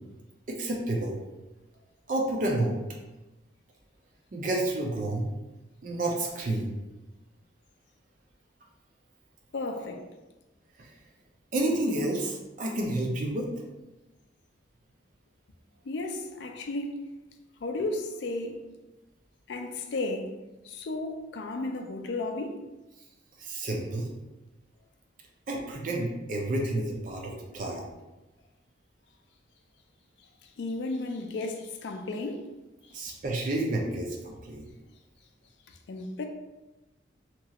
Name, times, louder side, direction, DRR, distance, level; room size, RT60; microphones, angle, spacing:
voice 1, 0.5-1.2 2.1-2.8 4.3-5.3 5.8-6.7 10.8-10.9 11.5-13.5 23.4-24.1 25.5-27.9 32.9-34.7, right 1 dB, 45° right, 0.4 m, -30 dB
voice 2, 9.5-10.1 15.8-17.0 17.6-18.7 19.5-20.3 20.6-22.6 30.6-32.5 32.9-33.0 35.7-36.3, left 2 dB, 65° left, 0.4 m, -34 dB
2.9 x 2.4 x 2.8 m
head